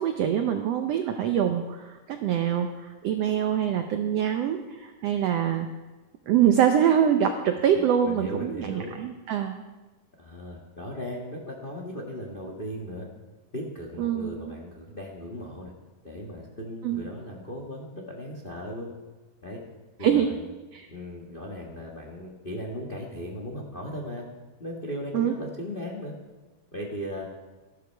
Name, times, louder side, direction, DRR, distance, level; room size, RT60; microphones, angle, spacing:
voice 1, 0.0-5.7 6.3-9.6 14.0-14.5 16.8-17.0 20.0-20.3 20.7-20.9 25.1-25.3, right 9 dB, 80° right, 6 dB, 1.4 m, -24 dB
voice 2, 7.7-8.9 10.2-13.1 13.5-15.7 16.0-18.9 19.4-19.6 20.0-20.5 20.9-24.3 24.6-26.1 26.7-27.3, equal, 55° left, -1 dB, 0.5 m, -37 dB
13.5 x 13.0 x 4.6 m, 1.2 s
omnidirectional pair, 3.8 m